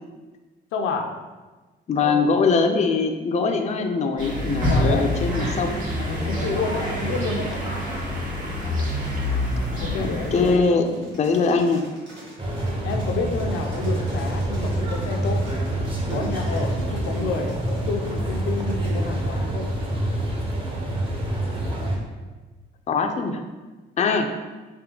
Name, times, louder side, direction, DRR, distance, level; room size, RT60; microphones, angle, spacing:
voice 1, 0.7-1.1 2.0-2.2 4.7-5.1 6.2-7.6 9.8-10.8 12.8-15.4 16.1-19.7, left 4 dB, 90° left, 3 dB, 0.5 m, -29 dB
voice 2, 1.9-6.3 10.0-11.8 22.9-23.4 24.0-24.3, left 4 dB, 35° left, 5 dB, 0.4 m, -22 dB
sound 1, 4.2-10.5, left 1 dB, 40° right, 1.5 m, -26 dB
Single Horse Galopp, 8.8-20.3, equal, 70° right, 1.5 m, -44 dB
sound 2, 12.4-22.0, right 1 dB, 25° right, 0.8 m, -26 dB
3.5 x 2.7 x 3.7 m, 1.3 s
cardioid pair, 90°, 20 cm